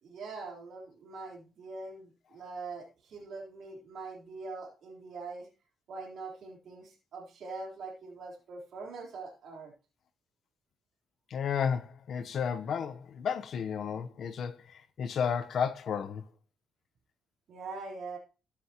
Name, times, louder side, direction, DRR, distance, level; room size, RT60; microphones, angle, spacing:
voice 1, 0.0-5.5 5.9-9.7 17.5-18.2, right 3 dB, 65° right, 3.8 m, -43 dB
voice 2, 11.3-16.2, left 7 dB, 60° left, 1.0 m, -32 dB
14.0 x 8.4 x 3.0 m
cardioid pair, 90°, 0 cm